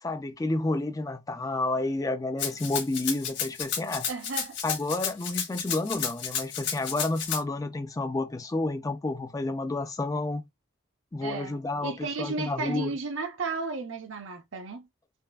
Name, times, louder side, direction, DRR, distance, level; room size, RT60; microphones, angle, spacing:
voice 1, 0.0-4.1 4.6-10.4 11.1-12.9, left 2 dB, 15° left, 0.3 m, -30 dB
Rattle (instrument), 2.4-7.4, left 8 dB, 60° left, 1.5 m, -32 dB
voice 2, 4.1-4.6 11.2-14.9, right 3 dB, 70° right, 0.7 m, -34 dB
5.2 x 2.5 x 2.3 m
head